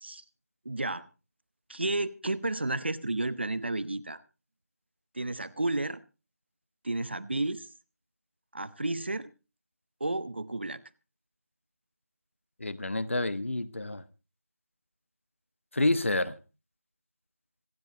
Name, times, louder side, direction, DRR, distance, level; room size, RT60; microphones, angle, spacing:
voice 1, 0.6-1.1 1.7-4.2 5.1-6.0 6.8-7.7 8.5-9.3 10.0-10.8, right 2 dB, 40° right, 0.8 m, -32 dB
voice 2, 12.6-14.0 15.7-16.4, left 2 dB, 50° left, 1.0 m, -28 dB
26.5 x 9.8 x 2.9 m
figure-of-eight pair, 175°, 9 cm